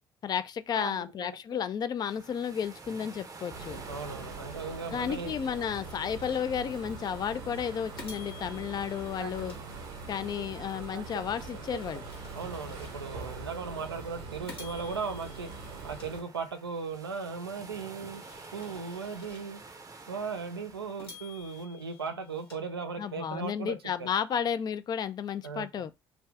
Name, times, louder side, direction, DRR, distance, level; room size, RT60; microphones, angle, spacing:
voice 1, 0.2-3.8 4.9-9.5 10.1-12.0 23.0-25.9, left 8 dB, 35° left, 0.4 m, -32 dB
voice 2, 0.7-1.6 3.7-5.3 9.2-9.5 10.9-11.2 12.3-15.5 15.8-18.2 18.5-19.6 20.1-24.1 25.4-25.8, right 5 dB, 85° right, 0.4 m, -37 dB
sound 1, 2.1-21.6, right 3 dB, 30° right, 0.7 m, -51 dB
sound 2, 3.5-16.2, right 3 dB, 60° right, 0.9 m, -43 dB
sound 3, 4.5-6.8 7.3-7.4 8.0-10.3 10.8-13.3 13.8-13.9 14.5-16.8 17.3-19.8 20.3-20.4 21.0-23.3, left 4 dB, 85° left, 1.0 m, -52 dB
3.4 x 2.4 x 3.4 m
figure-of-eight pair, 50°, 12 cm